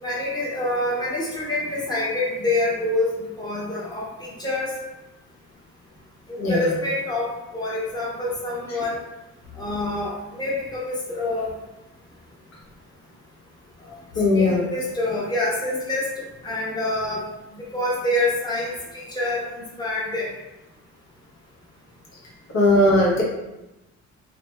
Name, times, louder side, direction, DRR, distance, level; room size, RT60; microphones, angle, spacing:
voice 1, 0.0-3.1 3.4-4.7 6.3-7.3 7.5-9.0 9.6-11.5 14.3-16.1 16.4-17.2 17.7-20.3, left 2 dB, 15° left, -5 dB, 0.8 m, -26 dB
voice 2, 14.1-14.6 22.5-23.2, left 1 dB, 65° left, -4 dB, 0.9 m, -18 dB
2.5 x 2.1 x 3.0 m, 0.99 s
cardioid pair, 90°, 30 cm